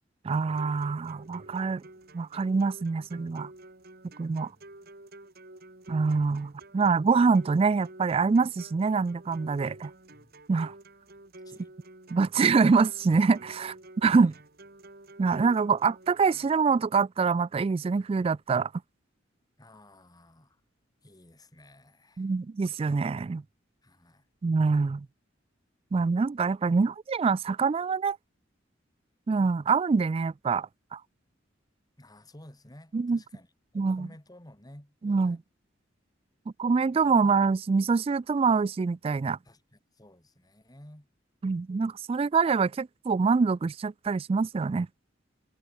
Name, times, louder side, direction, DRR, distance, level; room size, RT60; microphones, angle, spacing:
voice 1, 0.2-1.8 2.1-3.5 4.2-4.5 5.9-9.9 10.5-10.7 12.1-13.7 14.0-14.3 15.2-18.7 22.2-23.4 24.4-25.1 25.9-28.2 29.3-31.0 32.9-33.2 33.8-34.1 35.0-35.4 36.6-39.4 41.4-44.9, right 4 dB, 30° right, 0.3 m, -25 dB
sound 1, 0.5-16.5, right 2 dB, 55° right, 5.7 m, -50 dB
voice 2, 11.4-11.7 13.6-13.8 14.1-14.3 19.6-20.6 21.0-22.3 23.8-24.3 32.0-33.5 33.7-35.4 36.8-37.2 39.4-41.1, left 1 dB, 20° left, 3.1 m, -53 dB
head